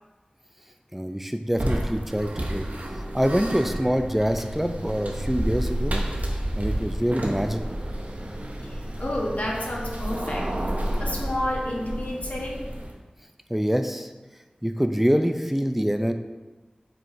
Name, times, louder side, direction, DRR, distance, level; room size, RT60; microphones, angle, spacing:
voice 1, 0.9-2.7 3.1-6.0 6.6-7.8 13.5-14.1 14.6-16.1, equal, 5° right, 7 dB, 0.5 m, -25 dB
sound 1, 1.5-13.0, right 1 dB, 70° right, 0.8 m, -31 dB
sound 2, 4.2-10.6, equal, 40° right, 0.7 m, -40 dB
voice 2, 8.6-10.5 10.9-12.6, left 1 dB, 65° left, -2 dB, 1.2 m, -30 dB
7.5 x 4.7 x 2.7 m, 1.2 s
wide cardioid pair, 45°, 3 cm